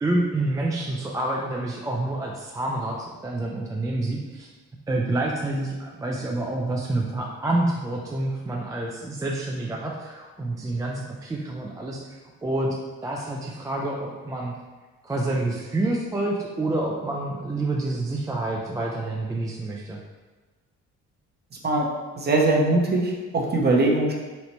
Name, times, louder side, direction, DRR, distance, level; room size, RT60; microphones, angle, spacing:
voice 1, 0.0-4.5 4.9-14.5 15.0-20.0, right 2 dB, 10° right, -2 dB, 0.3 m, -28 dB
voice 2, 22.2-24.1, right 2 dB, 35° right, -1 dB, 0.7 m, -21 dB
4.1 x 2.1 x 2.9 m, 1.3 s
cardioid pair, 90°, 30 cm